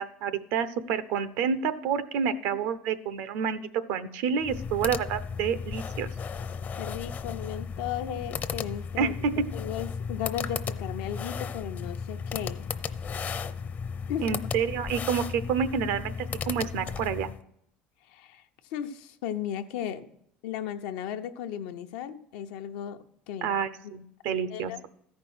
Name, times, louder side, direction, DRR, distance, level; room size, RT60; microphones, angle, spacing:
voice 1, 0.0-6.1 9.0-9.5 14.2-17.3 23.4-24.7, right 7 dB, 75° right, 14 dB, 0.8 m, -29 dB
sound 1, 4.4-17.4, left 6 dB, 40° left, 0.7 m, -35 dB
voice 2, 6.8-9.1 9.5-12.7 14.1-14.4 18.1-18.4 18.7-20.1 20.4-23.5 24.5-24.8, left 10 dB, 80° left, 7 dB, 0.8 m, -35 dB
13.5 x 5.3 x 6.1 m, 0.73 s
supercardioid pair, 85°, 4 cm